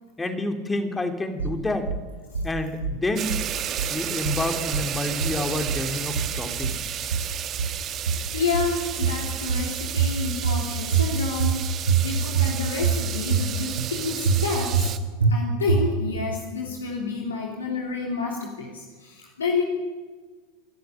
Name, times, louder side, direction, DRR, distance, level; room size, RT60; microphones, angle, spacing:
voice 1, 0.2-1.9 2.4-3.4 3.9-6.8, left 2 dB, 15° left, 5 dB, 3.0 m, -28 dB
sound 1, 1.4-2.0 2.3-3.0 3.3-4.0 4.3-4.9 5.2-5.9 6.2-6.9 7.1-7.8 8.1-8.8 9.0-9.7 10.0-10.6 10.9-11.6 11.9-12.5 12.8-13.5 13.8-13.9 14.3-14.9 15.2-15.3 15.7-16.2, right 6 dB, 80° right, 1.9 m, -24 dB
sound 2, 3.2-15.0, right 10 dB, 35° right, 1.4 m, -32 dB
voice 2, 8.3-11.6 12.0-19.6, left 4 dB, 80° left, -1 dB, 3.3 m, -29 dB
25.5 x 13.0 x 9.2 m, 1.4 s
figure-of-eight pair, 85°, 0 cm